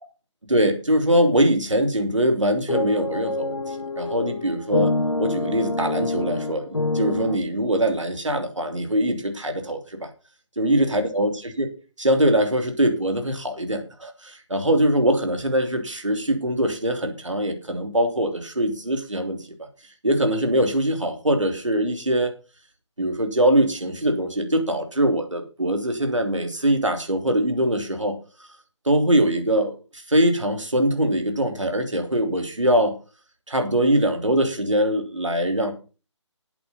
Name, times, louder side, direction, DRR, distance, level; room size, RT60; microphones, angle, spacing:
voice 1, 0.5-4.9 5.2-10.1 10.6-11.3 11.6-11.7 12.0-19.4 20.0-22.3 23.0-28.2 28.8-32.9 33.5-35.7, right 1 dB, 75° right, 6 dB, 3.3 m, -22 dB
sound 1, 2.7-7.4, left 2 dB, 80° left, 1.4 m, -26 dB
11.5 x 8.4 x 5.6 m, 0.34 s
figure-of-eight pair, 150°, 16 cm